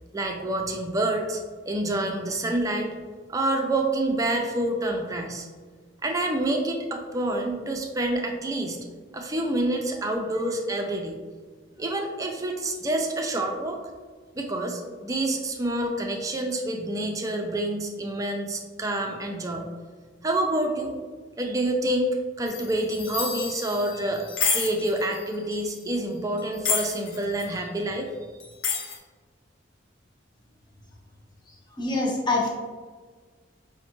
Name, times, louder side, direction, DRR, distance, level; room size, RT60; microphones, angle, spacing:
voice 1, 0.1-1.4 1.7-2.9 3.3-5.5 6.0-8.8 9.1-11.1 11.8-13.8 14.3-19.7 20.2-21.0 21.4-24.3 24.5-28.1, right 1 dB, 20° right, 2 dB, 0.4 m, -27 dB
sound 1, 22.5-25.8 26.4-27.5 28.4-29.0, left 5 dB, 85° left, 0.6 m, -30 dB
voice 2, 31.8-32.5, left 2 dB, 25° left, -3 dB, 0.7 m, -24 dB
5.1 x 2.1 x 2.9 m, 1.5 s
head